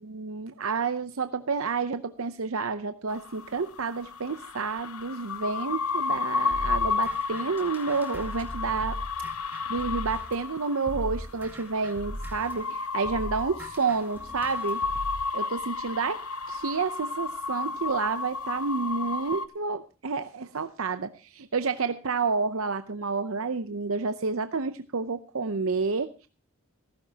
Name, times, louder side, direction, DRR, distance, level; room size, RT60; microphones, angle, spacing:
voice 1, 0.0-9.0 9.7-14.8 15.3-16.2 16.5-26.3, right 4 dB, 70° right, 10 dB, 0.7 m, -30 dB
sound 1, 3.1-19.5, left 4 dB, 80° left, 1.0 m, -33 dB
sound 2, 6.5-10.5 10.9-15.2, equal, 10° right, 2.2 m, -39 dB
16.0 x 15.0 x 2.8 m, 0.33 s
head